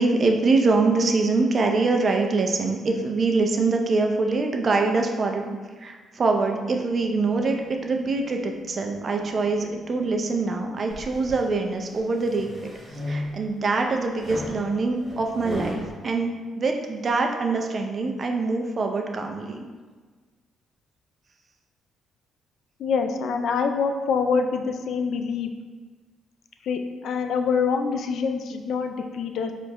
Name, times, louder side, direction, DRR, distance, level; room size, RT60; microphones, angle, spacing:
voice 1, 0.0-12.7 13.1-19.6, right 3 dB, 45° right, 3 dB, 0.5 m, -24 dB
sound 1, 6.9-11.9, left 4 dB, 30° left, 0.9 m, -49 dB
sound 2, 10.9-11.5 12.0-13.6 14.2-15.9, left 1 dB, 15° right, 1.1 m, -35 dB
voice 2, 22.8-25.5 26.6-29.5, left 5 dB, 75° left, 5 dB, 0.3 m, -25 dB
4.5 x 2.4 x 2.9 m, 1.4 s
cardioid pair, 75°, 0 cm